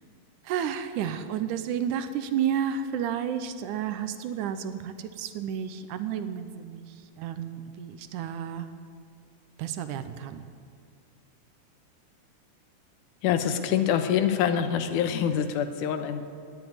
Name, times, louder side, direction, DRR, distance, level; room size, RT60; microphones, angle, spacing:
voice 1, 0.4-8.7 9.6-10.5, right 8 dB, 80° right, 11 dB, 2.2 m, -31 dB
voice 2, 13.2-16.2, left 8 dB, 85° left, 8 dB, 2.4 m, -25 dB
18.0 x 7.2 x 9.5 m, 2.2 s
omnidirectional pair, 3.6 m